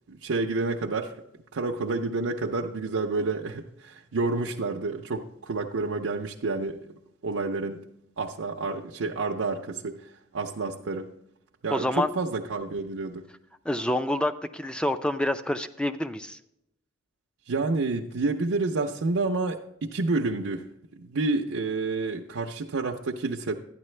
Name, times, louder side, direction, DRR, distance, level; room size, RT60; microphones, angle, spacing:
voice 1, 0.1-1.1 1.5-6.8 7.2-7.8 8.2-11.1 11.6-13.3 17.5-20.7 21.0-23.5, right 3 dB, 90° right, 0 dB, 0.6 m, -29 dB
voice 2, 11.7-12.1 13.7-16.4, left 1 dB, 5° left, 10 dB, 0.4 m, -27 dB
12.0 x 9.7 x 3.2 m, 0.82 s
head